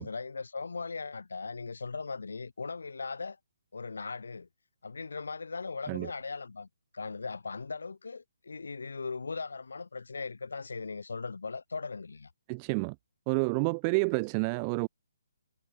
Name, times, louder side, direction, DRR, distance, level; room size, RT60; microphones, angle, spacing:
voice 1, 0.0-3.4 3.7-4.5 4.8-6.7 6.9-12.3, left 4 dB, 85° left, 1.4 m, -38 dB
voice 2, 12.5-12.9 13.3-14.9, right 34 dB, 25° right, 1.3 m, -29 dB
hypercardioid pair, 155°, 0 cm